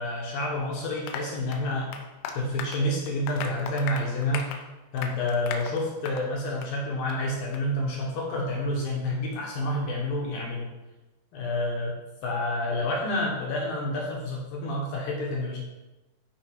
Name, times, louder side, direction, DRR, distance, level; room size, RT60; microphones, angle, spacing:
voice 1, 0.0-1.9 2.3-4.5 4.9-10.7 11.3-11.9 12.2-15.6, left 1 dB, 65° left, -2 dB, 2.4 m, -29 dB
Applause, 1.1-6.3 6.6-6.8 7.1-7.2 7.5-7.6, left 6 dB, 85° left, 3.3 m, -38 dB
12.5 x 4.7 x 4.6 m, 1.1 s
omnidirectional pair, 5.7 m